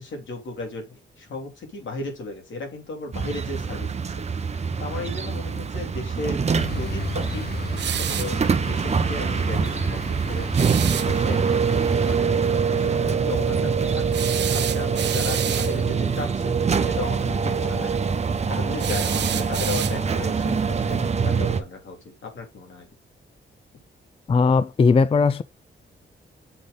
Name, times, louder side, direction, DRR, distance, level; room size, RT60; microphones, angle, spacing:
voice 1, 0.0-6.4 6.7-7.5 8.1-10.5 11.0-11.4 12.1-14.1 14.5-18.0 18.5-22.9, left 3 dB, 80° left, 2.9 m, -35 dB
sound 1, 3.1-21.6, right 5 dB, 35° right, 0.8 m, -24 dB
sound 2, 6.5-12.2, left 4 dB, 55° left, 1.5 m, -36 dB
sound 3, 7.8-8.4 10.5-11.1 14.1-15.8 18.8-20.2, right 10 dB, 65° right, 0.5 m, -29 dB
voice 2, 24.3-25.4, left 4 dB, 30° left, 0.4 m, -18 dB
6.8 x 3.9 x 5.2 m
wide cardioid pair, 140°, 19 cm